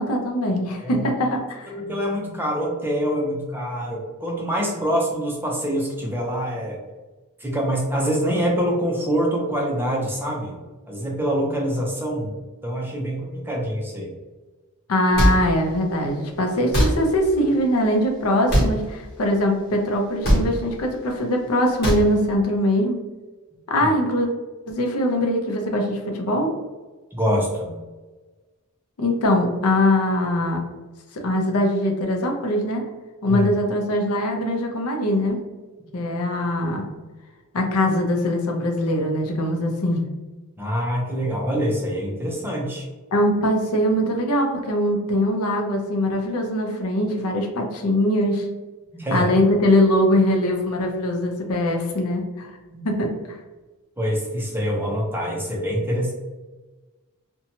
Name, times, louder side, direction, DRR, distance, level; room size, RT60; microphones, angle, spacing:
voice 1, 0.0-1.7 14.9-23.0 23.7-24.3 24.7-26.5 29.0-30.6 31.1-32.8 33.2-35.4 35.9-36.8 37.5-40.0 43.1-48.4 49.1-52.5 52.8-53.1, left 1 dB, 85° left, 2 dB, 0.6 m, -22 dB
voice 2, 1.7-6.8 7.4-10.6 10.9-12.3 12.6-14.1 27.1-27.8 33.3-33.5 40.6-42.9 48.9-49.3 52.7-52.8 54.0-56.1, equal, 10° right, -2 dB, 0.5 m, -25 dB
sound 1, 15.2-15.3 16.7-16.9 18.5-18.7 20.2-20.4 21.8-22.0, equal, 45° left, 1.0 m, -17 dB
2.7 x 2.2 x 2.8 m, 1.2 s
head